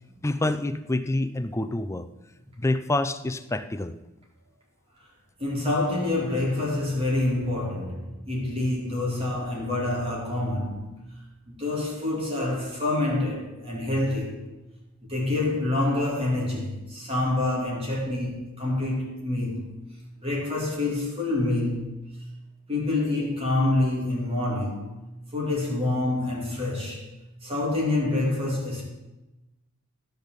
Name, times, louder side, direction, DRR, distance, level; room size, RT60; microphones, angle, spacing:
voice 1, 0.2-2.1 2.6-4.0, left 2 dB, 15° left, 0.5 m, -27 dB
voice 2, 5.4-11.0 11.5-14.4 15.0-19.8 20.2-21.9 22.7-24.9 25.3-27.1 27.4-28.8, left 2 dB, 25° right, 3.0 m, -27 dB
14.5 x 5.3 x 7.3 m
head